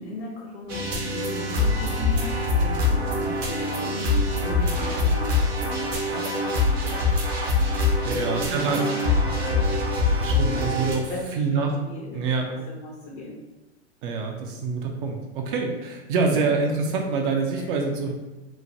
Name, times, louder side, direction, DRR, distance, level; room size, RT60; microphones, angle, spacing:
voice 1, 0.0-7.2 8.0-9.4 10.5-13.4 16.3-16.5 17.6-17.7, left 2 dB, 50° left, -3 dB, 0.6 m, -38 dB
sound 1, 0.7-10.9, left 2 dB, 65° right, 0.8 m, -24 dB
voice 2, 8.1-8.8 10.1-11.8 12.1-12.5 14.0-18.1, right 4 dB, 50° right, 2 dB, 0.4 m, -26 dB
3.1 x 2.0 x 2.5 m, 1.1 s
hypercardioid pair, 115°, 33 cm